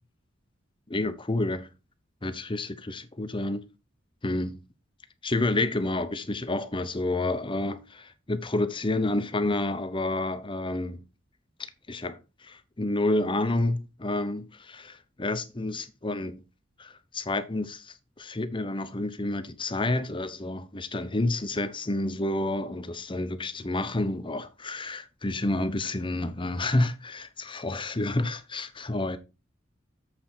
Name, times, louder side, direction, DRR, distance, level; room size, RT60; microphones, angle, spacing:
voice 1, 0.9-1.7 2.2-3.6 4.2-4.6 5.2-11.0 11.6-16.4 16.8-29.2, left 2 dB, 25° left, 0.9 m, -29 dB
7.9 x 7.3 x 4.5 m
head